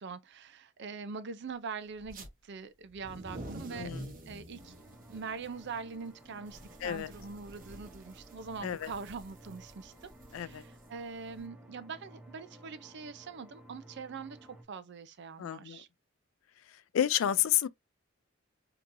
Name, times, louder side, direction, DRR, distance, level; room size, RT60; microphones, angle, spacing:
voice 1, 0.0-3.9 4.3-4.8 5.1-15.9, right 5 dB, 60° right, 0.5 m, -43 dB
sound 1, 2.0-2.3 2.9-11.4, right 1 dB, 45° right, 1.1 m, -48 dB
voice 2, 3.7-4.1 6.8-7.1 8.6-8.9 10.3-10.6 15.4-15.8 16.9-17.7, left 11 dB, 75° left, 0.3 m, -30 dB
sound 2, 4.6-14.6, right 1 dB, 5° right, 0.6 m, -55 dB
3.7 x 2.9 x 2.5 m
head